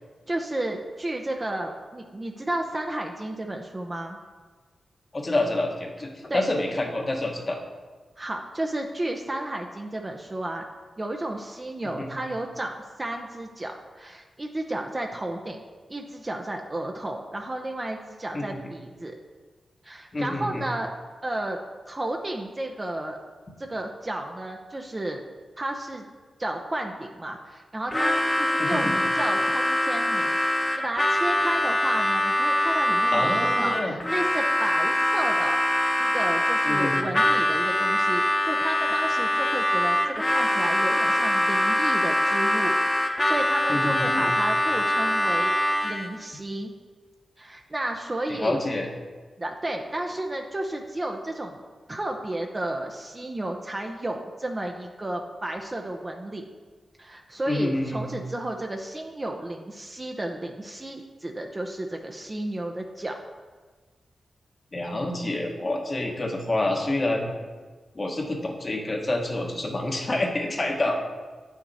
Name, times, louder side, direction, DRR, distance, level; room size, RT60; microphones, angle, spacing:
voice 1, 0.3-4.2 6.3-6.4 8.2-10.6 11.0-15.6 15.9-19.1 19.8-20.9 21.2-21.6 21.9-23.2 23.6-25.2 25.6-26.0 26.4-30.4 30.8-42.8 43.2-46.7 47.4-48.6 49.4-51.6 51.9-56.4 57.0-63.2, right 1 dB, 25° right, 2 dB, 0.7 m, -32 dB
voice 2, 5.1-7.6 11.8-12.1 18.3-18.6 20.1-20.6 28.6-28.9 33.1-34.0 36.6-37.1 43.7-44.3 48.3-48.9 57.5-58.1 64.7-67.3 67.9-71.0, left 2 dB, 40° left, 2 dB, 1.2 m, -27 dB
Harmonica, 27.9-46.2, left 1 dB, 20° left, 0.8 m, -23 dB
8.9 x 5.9 x 4.1 m, 1.4 s
cardioid pair, 65°, 0 cm